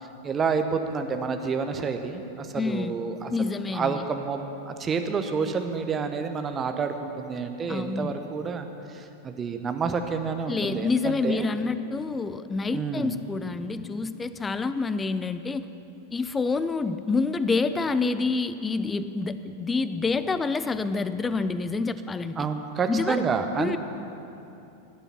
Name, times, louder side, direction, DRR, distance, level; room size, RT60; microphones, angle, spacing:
voice 1, 0.2-3.3 3.7-11.5 12.7-13.2 22.4-23.8, right 5 dB, 20° right, 6 dB, 1.0 m, -29 dB
voice 2, 2.5-3.0 3.3-4.1 7.7-8.2 10.5-15.7 16.1-22.5 22.9-23.2 23.6-23.8, left 4 dB, 15° left, 13 dB, 0.5 m, -27 dB
16.0 x 9.0 x 5.8 m, 2.8 s
figure-of-eight pair, 90°, 0 cm